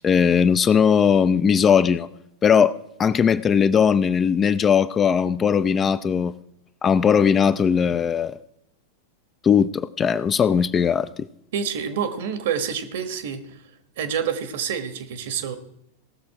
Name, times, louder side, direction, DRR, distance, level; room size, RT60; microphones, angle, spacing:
voice 1, 0.0-2.1 2.4-6.3 6.8-8.4 9.4-11.1, left 7 dB, 25° left, 14 dB, 0.5 m, -19 dB
voice 2, 11.5-13.4 14.0-15.6, right 7 dB, 60° right, 11 dB, 1.3 m, -27 dB
18.0 x 6.7 x 4.7 m, 0.76 s
figure-of-eight pair, 95°, 0 cm